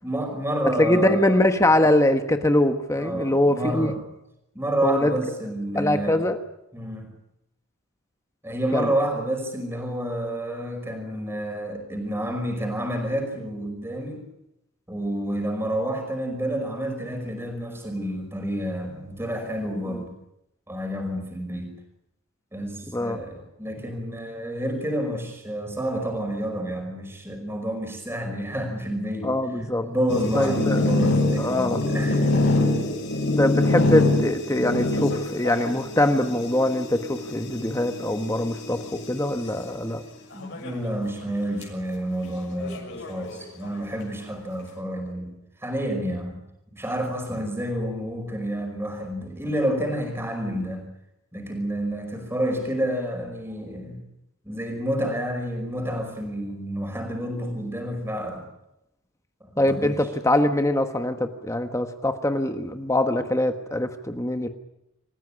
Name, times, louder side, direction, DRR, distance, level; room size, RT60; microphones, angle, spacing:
voice 1, 0.0-1.4 1.7-1.9 3.0-4.0 4.6-6.2 6.7-7.1 8.4-14.2 14.9-20.1 20.7-21.7 22.5-29.3 29.8-32.8 40.3-46.4 46.7-50.9 51.3-54.0 54.4-58.5 59.4-60.0, equal, 10° right, 4 dB, 5.3 m, -29 dB
voice 2, 0.8-3.9 4.8-5.1 5.7-6.4 8.7-8.9 22.9-23.2 29.2-29.9 30.3-30.8 31.4-31.9 33.4-40.0 59.6-64.5, left 1 dB, 15° left, 7 dB, 1.2 m, -23 dB
sound 1, 30.1-39.5 40.3-40.9 41.2-41.3 41.6-41.7 42.6-43.7, left 2 dB, 55° left, 6.8 m, -25 dB
27.5 x 15.5 x 9.9 m, 0.86 s
head